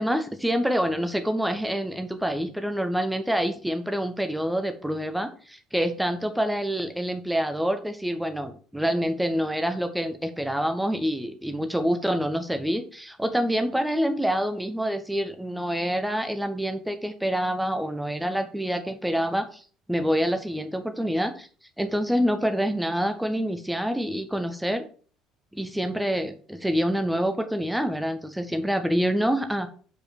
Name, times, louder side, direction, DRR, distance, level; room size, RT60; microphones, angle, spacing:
voice 1, 0.0-19.6 19.9-21.5 21.8-24.8 25.5-29.7, equal, 5° right, 7 dB, 1.2 m, -26 dB
7.3 x 5.0 x 4.3 m, 0.41 s
figure-of-eight pair, 55°, 0 cm